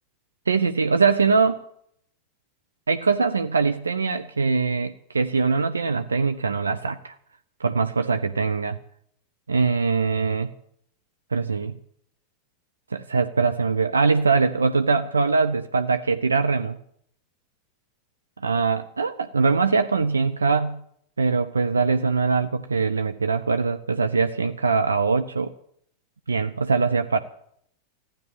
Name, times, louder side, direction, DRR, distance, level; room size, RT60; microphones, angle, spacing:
voice 1, 0.5-1.6 2.9-7.2 7.6-8.8 9.5-10.5 11.3-11.8 12.9-16.8 18.4-20.8 21.2-25.5 26.3-27.2, right 4 dB, 80° right, 10 dB, 0.7 m, -22 dB
15.0 x 10.5 x 8.9 m, 0.68 s
figure-of-eight pair, 90°, 0 cm